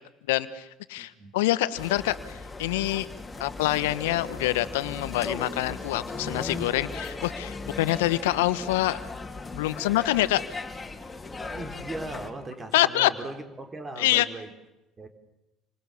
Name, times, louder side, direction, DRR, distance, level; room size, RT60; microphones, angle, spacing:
voice 1, 0.3-3.1 3.4-9.0 9.5-10.4 12.7-13.1 14.0-14.3, left 16 dB, 80° left, 1.2 m, -26 dB
voice 2, 1.0-1.4 11.5-14.5 15.0-15.1, right 2 dB, 25° right, 4.2 m, -38 dB
sound 1, 1.8-12.3, left 3 dB, 20° left, 3.5 m, -37 dB
29.0 x 25.0 x 7.1 m
hypercardioid pair, 60°, 0 cm